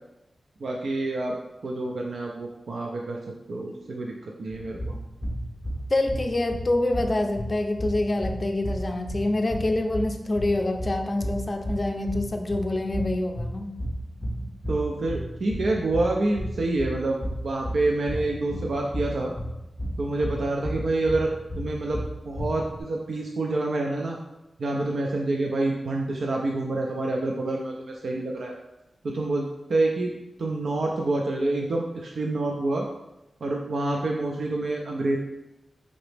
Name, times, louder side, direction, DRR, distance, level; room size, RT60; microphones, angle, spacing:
voice 1, 0.6-1.4 1.6-5.0 14.7-17.2 17.4-19.3 20.0-21.3 21.6-24.2 24.6-28.5 29.0-30.1 30.4-32.9 33.4-35.2, right 2 dB, 75° right, 0 dB, 0.5 m, -27 dB
sound 1, 4.5-22.8, equal, 10° right, 1.3 m, -34 dB
voice 2, 5.9-13.7, left 2 dB, 35° left, 4 dB, 0.5 m, -26 dB
5.1 x 2.9 x 3.3 m, 0.93 s
wide cardioid pair, 115°, 0 cm